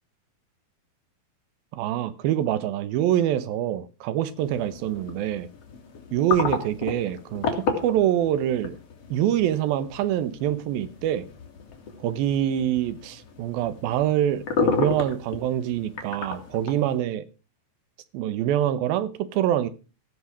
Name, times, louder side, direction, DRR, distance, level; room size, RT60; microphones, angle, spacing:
voice 1, 1.7-5.5 6.1-8.7 9.1-11.3 12.0-17.3 18.1-19.7, right 11 dB, 80° right, 2.8 m, -25 dB
sound 1, 4.4-17.0, left 5 dB, 45° left, 3.0 m, -33 dB
16.0 x 6.9 x 6.1 m
omnidirectional pair, 4.2 m